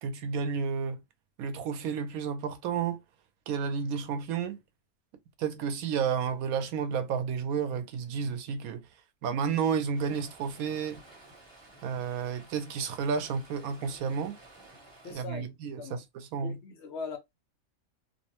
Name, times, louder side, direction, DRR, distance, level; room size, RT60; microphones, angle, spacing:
voice 1, 0.0-1.0 1.4-3.0 3.5-4.6 5.4-8.8 9.2-11.0 11.8-14.4 15.1-16.6, right 6 dB, 85° right, 1.1 m, -31 dB
Stream, 9.9-15.2, right 2 dB, 20° right, 0.9 m, -54 dB
voice 2, 15.0-16.0 16.4-17.2, left 5 dB, 65° left, 0.8 m, -41 dB
2.9 x 2.0 x 2.8 m
omnidirectional pair, 1.5 m